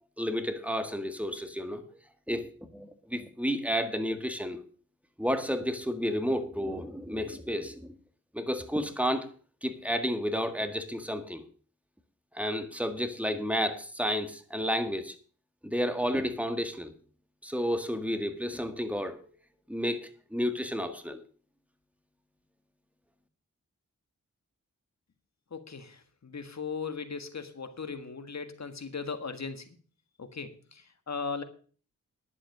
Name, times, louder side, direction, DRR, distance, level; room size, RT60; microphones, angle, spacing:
voice 1, 0.2-1.8 2.3-2.5 2.7-4.6 5.2-7.9 8.3-9.3 9.6-11.4 12.3-15.2 15.6-16.9 17.4-19.2 19.7-21.2, equal, 5° right, 8 dB, 1.7 m, -31 dB
voice 2, 25.5-29.7 30.2-31.4, left 5 dB, 60° left, 9 dB, 1.7 m, -38 dB
11.0 x 7.5 x 6.7 m, 0.41 s
cardioid pair, 50°, 31 cm